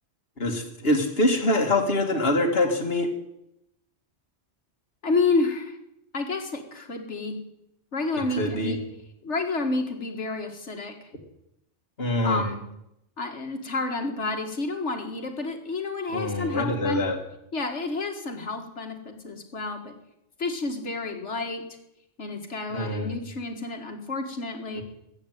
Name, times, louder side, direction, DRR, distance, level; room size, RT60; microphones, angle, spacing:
voice 1, 0.4-3.1 8.4-8.8 12.0-12.4 16.1-17.2 22.7-23.1 24.8-24.9, left 1 dB, 55° left, 2 dB, 2.3 m, -24 dB
voice 2, 5.0-5.8 6.1-7.4 7.9-8.8 9.2-10.9 12.2-12.6 13.2-17.0 17.5-19.9 20.4-21.6 22.2-24.8, left 3 dB, 70° left, 4 dB, 2.1 m, -29 dB
14.0 x 8.0 x 9.1 m, 0.83 s
omnidirectional pair, 1.2 m